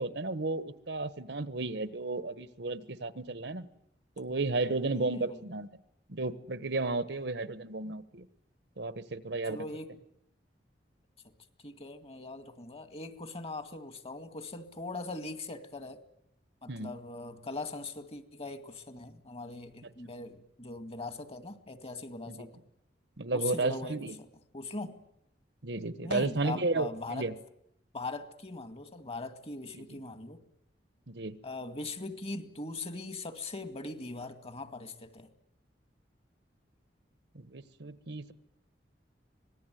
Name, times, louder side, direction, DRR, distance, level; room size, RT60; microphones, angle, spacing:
voice 1, 0.0-3.7 4.2-5.7 6.1-8.2 8.8-9.6 16.7-16.9 22.3-22.5 23.2-24.2 25.6-27.3 29.8-29.9 31.1-31.4 37.3-38.3, right 3 dB, 70° right, 14 dB, 1.3 m, -33 dB
voice 2, 4.9-5.4 9.4-9.9 11.6-16.0 16.6-22.5 23.3-24.3 24.5-25.0 26.0-27.3 27.9-30.4 31.4-35.3, left 2 dB, 35° left, 10 dB, 2.1 m, -41 dB
25.5 x 19.5 x 9.3 m, 0.76 s
head